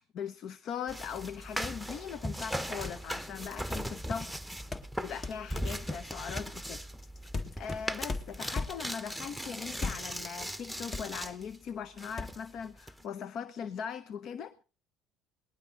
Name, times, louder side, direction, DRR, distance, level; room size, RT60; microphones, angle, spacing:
voice 1, 0.0-4.3 5.0-6.8 7.6-14.6, left 7 dB, 55° left, 0.9 m, -40 dB
sound 1, 0.9-11.6 12.0-13.0, equal, ahead, 1.1 m, -39 dB
sound 2, 2.8-3.1 4.7-9.0 9.7-10.2 10.5-10.6 10.9-11.5 12.2-12.3, left 3 dB, 30° left, 1.7 m, -38 dB
19.5 x 12.0 x 3.9 m
hypercardioid pair, 65°, 0 cm